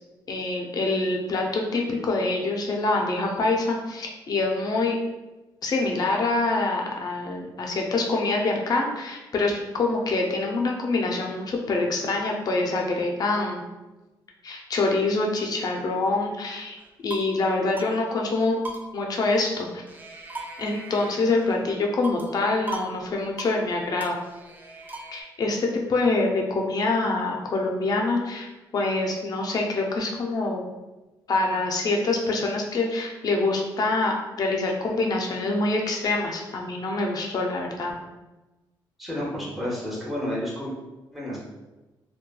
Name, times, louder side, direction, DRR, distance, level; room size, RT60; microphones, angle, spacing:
voice 1, 0.3-5.0 5.6-13.6 14.4-18.6 18.9-19.8 20.6-24.2 25.1-30.6 31.3-37.9, left 3 dB, 50° left, 1 dB, 0.5 m, -25 dB
sound 1, 16.8-17.4 17.8-17.9 18.2-18.3 18.6-19.6 19.9-21.6 22.0-22.4 22.7-22.9 23.2-23.6 24.0-25.2, right 2 dB, 20° right, 0.4 m, -38 dB
voice 2, 39.0-40.7 41.1-41.4, equal, ahead, -6 dB, 1.0 m, -30 dB
3.0 x 2.2 x 2.2 m, 1.1 s
cardioid pair, 100°, 8 cm